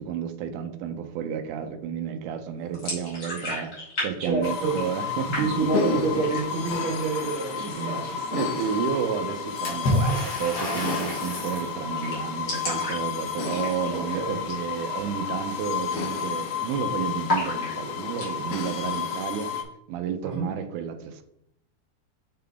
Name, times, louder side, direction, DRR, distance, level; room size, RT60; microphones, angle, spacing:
voice 1, 0.0-5.7 5.9-6.0 7.6-8.0 8.3-19.6 19.9-21.2, right 8 dB, 80° right, 7 dB, 2.1 m, -31 dB
sound 1, 2.7-4.1 4.3-5.1 5.3-5.9 6.2-6.7 7.1-7.2 7.5-8.2 9.8-10.0 10.3-10.4 10.6-10.7 11.1-11.4 11.7-11.8 12.0-14.0 14.4-14.7 15.0-15.1 15.6-15.9 16.2-16.8 17.3-18.3, left 2 dB, 35° left, 2.4 m, -32 dB
voice 2, 4.2-4.8 5.3-8.4 8.7-8.8 13.9-14.4 20.2-20.5, right 4 dB, 65° right, -2 dB, 2.8 m, -28 dB
sound 2, 4.4-19.6, left 6 dB, 85° left, 1.3 m, -31 dB
Water / Splash splatter, 9.6-11.7, left 1 dB, 50° left, 2.7 m, -28 dB
7.5 x 3.8 x 3.4 m, 0.76 s
omnidirectional pair, 3.5 m